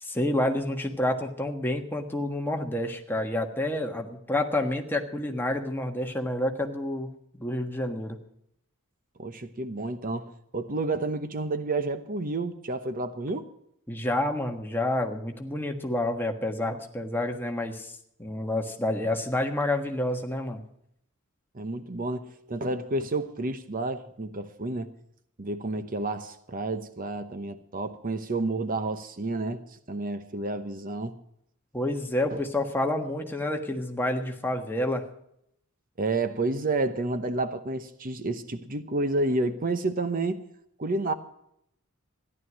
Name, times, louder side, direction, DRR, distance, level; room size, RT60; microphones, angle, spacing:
voice 1, 0.0-8.2 13.9-17.9 18.2-20.6 31.7-35.0, left 1 dB, 10° left, 3 dB, 1.4 m, -29 dB
voice 2, 9.2-13.5 21.5-24.9 25.4-29.6 29.9-31.2 32.3-32.4 36.0-40.4 40.8-41.1, right 2 dB, 40° right, 10 dB, 0.9 m, -30 dB
14.5 x 11.0 x 6.2 m, 0.75 s
head